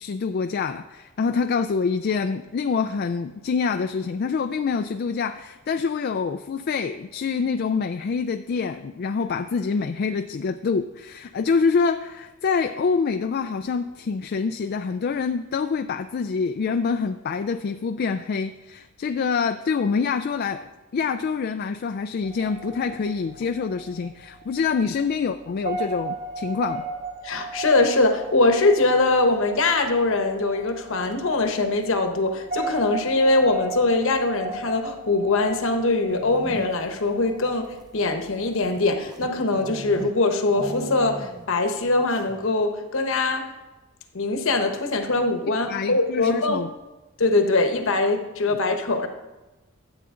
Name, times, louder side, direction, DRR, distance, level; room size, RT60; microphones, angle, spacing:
voice 1, 0.0-26.9 45.7-46.7 48.5-48.6, left 5 dB, 45° left, 7 dB, 0.3 m, -26 dB
sound 1, 22.2-38.7, right 2 dB, 50° right, 3.7 m, -36 dB
voice 2, 27.2-43.5 44.1-46.6 47.2-49.1, left 2 dB, 60° left, 6 dB, 1.0 m, -22 dB
sound 2, 36.0-37.0 37.6-40.2 40.5-41.6 41.8-41.9 42.2-42.6, right 1 dB, 20° right, 0.4 m, -37 dB
13.0 x 8.0 x 3.7 m, 1.1 s
head